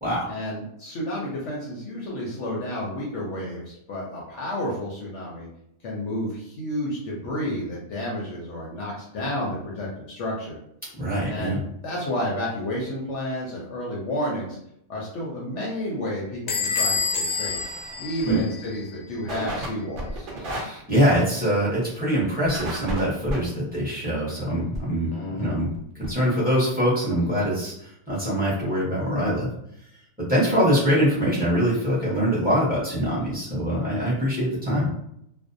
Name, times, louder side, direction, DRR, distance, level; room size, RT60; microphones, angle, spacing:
voice 1, 0.3-5.5 5.8-10.6 11.3-14.6 14.9-17.7 18.0-20.3 25.1-25.6, left 1 dB, 65° left, -4 dB, 0.8 m, -31 dB
voice 2, 11.0-11.6 18.2-18.4 20.4-25.7 26.0-29.5 30.3-34.9, equal, 10° right, -8 dB, 0.6 m, -23 dB
Bell / Squeak, 16.5-19.0, left 4 dB, 85° left, 0.3 m, -28 dB
sound 1, 17.5-17.8 18.2-18.3 18.6-18.7 19.3-19.7 20.0-20.6 22.5-23.4 24.7-24.8 25.5-25.6 25.7-25.8 26.0-26.1, equal, 55° right, 0.6 m, -31 dB
2.5 x 2.0 x 2.5 m, 0.75 s
omnidirectional pair, 1.5 m